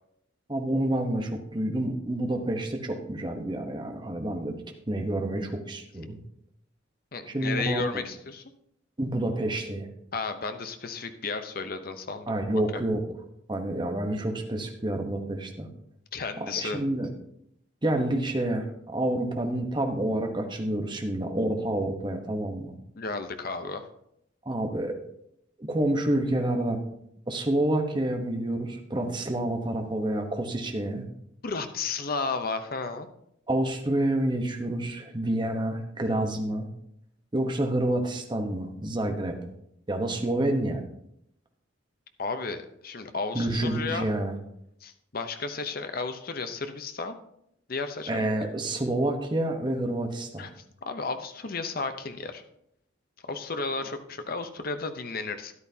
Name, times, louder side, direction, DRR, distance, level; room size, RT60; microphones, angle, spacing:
voice 1, 0.5-4.5 4.9-6.2 7.3-7.8 9.0-9.9 12.3-13.0 13.5-15.7 16.4-17.1 17.8-22.8 24.4-25.0 25.6-26.8 27.3-31.1 33.5-36.7 37.3-39.3 39.9-40.8 43.3-44.3 48.1-50.4, right 1 dB, 25° right, 4 dB, 1.1 m, -28 dB
voice 2, 7.1-8.5 10.1-12.4 12.7-12.8 16.1-16.8 22.9-23.9 31.4-33.1 42.2-44.0 44.8-47.2 47.7-48.3 50.4-50.5 50.8-52.4 53.3-55.5, left 4 dB, 50° left, 8 dB, 0.8 m, -33 dB
12.5 x 10.5 x 2.8 m, 0.76 s
head